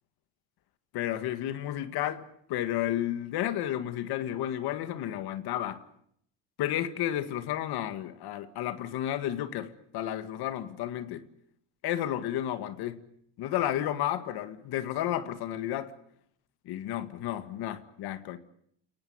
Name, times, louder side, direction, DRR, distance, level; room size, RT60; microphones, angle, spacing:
voice 1, 0.9-5.8 6.6-11.2 11.8-13.0 13.4-15.9 16.7-18.4, left 12 dB, 60° left, 2.0 m, -32 dB
30.0 x 18.5 x 9.5 m
cardioid pair, 175°, 42 cm